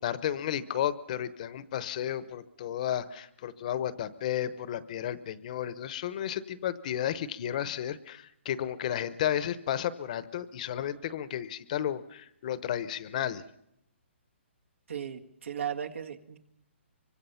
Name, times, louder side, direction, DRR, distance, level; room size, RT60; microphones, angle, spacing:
voice 1, 0.0-13.4, left 10 dB, 35° left, 15 dB, 0.8 m, -33 dB
voice 2, 14.9-16.4, right 8 dB, 80° right, 5 dB, 1.9 m, -36 dB
25.5 x 24.0 x 5.7 m, 0.79 s
hypercardioid pair, 165°, 7 cm